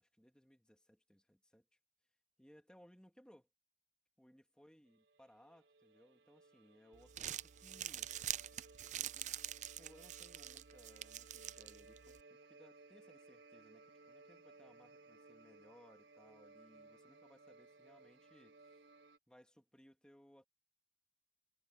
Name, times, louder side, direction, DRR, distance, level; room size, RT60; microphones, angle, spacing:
voice 1, 0.0-1.7 2.4-3.5 4.2-8.1 9.0-9.4 9.8-18.8 19.3-20.5, equal, 5° left, 2.2 m, -65 dB
sound 1, 4.9-19.2, right 3 dB, 75° right, 1.0 m, -62 dB
Crumpling crinkling, 6.9-12.2, right 12 dB, 40° right, 0.4 m, -45 dB
head